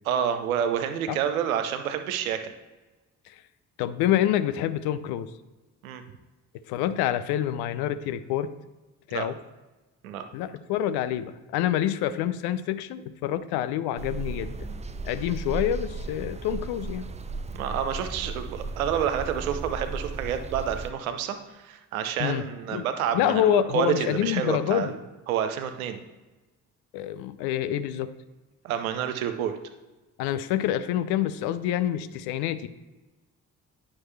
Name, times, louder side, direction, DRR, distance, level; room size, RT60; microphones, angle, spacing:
voice 1, 0.1-2.5 5.8-6.0 9.1-9.3 10.0-10.3 17.5-25.0 25.3-26.0 28.6-29.6, right 9 dB, 85° right, 8 dB, 0.6 m, -29 dB
voice 2, 3.8-5.3 6.7-8.5 9.1-9.4 10.3-14.7 15.0-17.1 22.2-22.4 22.7-22.9 23.1-24.9 26.9-28.1 30.2-32.7, left 11 dB, 65° left, 13 dB, 0.6 m, -27 dB
sound 1, 14.0-20.9, right 3 dB, 15° right, 0.5 m, -35 dB
9.4 x 5.9 x 3.3 m, 1.1 s
hypercardioid pair, 45°, 41 cm